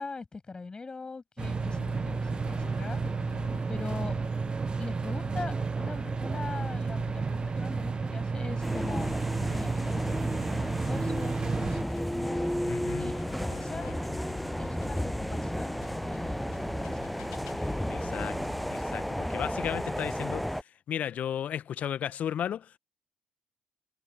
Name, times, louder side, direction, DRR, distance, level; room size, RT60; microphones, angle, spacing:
voice 1, 0.0-3.4 3.7-4.2 4.8-9.1 9.5-12.5 12.9-15.8 16.1-17.1, left 4 dB, 25° left, 7.8 m, -42 dB
sound 1, 1.4-18.8, left 22 dB, 75° left, 1.3 m, -49 dB
sound 2, 1.4-11.8, right 4 dB, 30° right, 1.8 m, -32 dB
sound 3, 8.6-20.6, equal, ahead, 0.6 m, -33 dB
voice 2, 12.7-13.1 17.5-18.4 18.7-22.8, left 9 dB, 50° left, 1.7 m, -35 dB
figure-of-eight pair, 45°, 3 cm